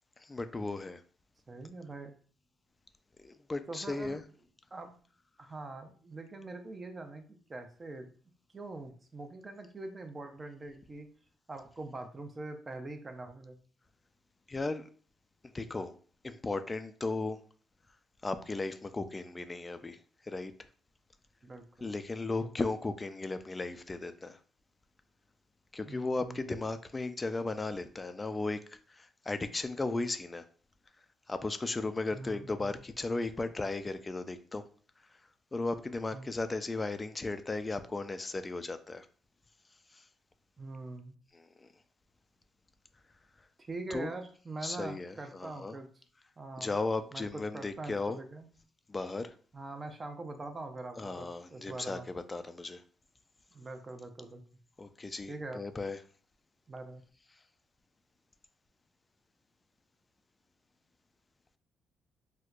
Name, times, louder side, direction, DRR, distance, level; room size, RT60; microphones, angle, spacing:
voice 1, 0.2-1.0 3.2-4.2 14.5-14.9 15.5-15.9 16.2-17.4 18.2-20.5 21.8-24.4 25.7-30.5 31.3-34.6 35.5-39.1 39.9-40.0 41.3-41.7 43.9-44.1 44.6-45.7 46.6-48.2 48.9-49.3 51.0-52.8 54.8-56.0, left 3 dB, 25° left, 10 dB, 0.3 m, -36 dB
voice 2, 1.5-2.2 3.7-4.2 4.7-4.9 5.4-7.2 7.5-8.1 8.5-11.1 11.5-13.6 21.4-21.9 22.4-22.5 25.9-26.4 32.1-32.7 36.1-36.3 40.6-41.2 43.6-45.9 46.4-46.7 47.1-48.5 49.5-52.1 53.5-54.4 55.3-55.6 56.7-57.0, right 2 dB, 30° right, 6 dB, 0.6 m, -43 dB
4.3 x 2.1 x 2.4 m, 0.42 s
cardioid pair, 90°, 0 cm